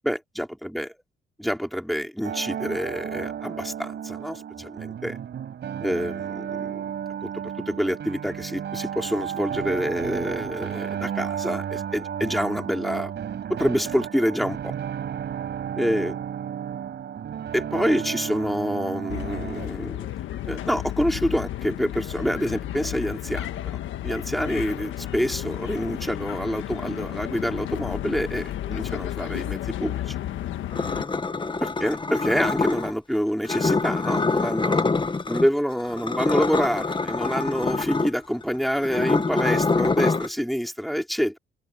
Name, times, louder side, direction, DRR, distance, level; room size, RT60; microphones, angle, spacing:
voice 1, 0.0-0.9 1.4-5.2 5.8-6.9 7.2-13.1 13.5-14.7 15.8-16.2 17.5-20.1 20.4-23.5 24.0-30.1 31.6-34.9 35.3-41.4, equal, ahead, 4.5 m, -27 dB
sound 1, 2.2-19.7, right 9 dB, 60° right, 5.0 m, -33 dB
sound 2, 19.1-31.0, left 12 dB, 80° left, 1.5 m, -32 dB
sound 3, 30.7-32.9 33.4-35.5 35.8-40.3, left 3 dB, 25° left, 1.3 m, -25 dB
open air
cardioid pair, 90°, 20 cm